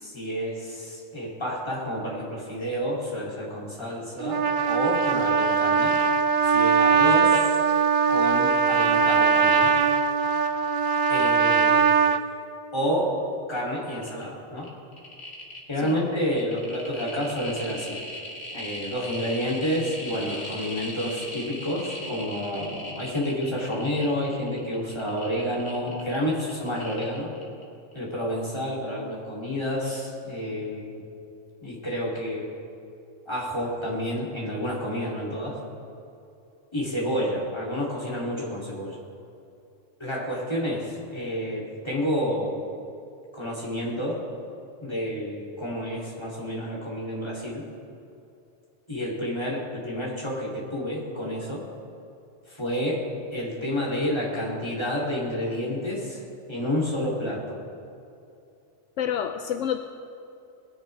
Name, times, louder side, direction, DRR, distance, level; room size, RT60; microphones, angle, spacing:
voice 1, 0.0-4.4 4.7-5.9 6.4-7.6 8.1-9.7 11.1-11.9 12.7-13.2 13.5-14.7 15.7-18.0 18.5-27.3 27.9-31.0 31.6-32.5 33.3-35.6 36.7-39.0 40.0-42.6 43.3-44.2 44.8-47.6 48.9-51.6 52.5-53.0 53.3-56.2 56.5-57.6, equal, 20° left, -5 dB, 3.0 m, -29 dB
Trumpet, 4.2-12.2, right 6 dB, 55° right, 0.6 m, -21 dB
sound 1, 13.8-14.2 14.6-27.6 27.9-28.0, left 1 dB, 55° left, 2.2 m, -39 dB
voice 2, 59.0-59.8, left 9 dB, 80° left, 7 dB, 0.9 m, -28 dB
20.5 x 10.5 x 3.4 m, 2.7 s
omnidirectional pair, 1.3 m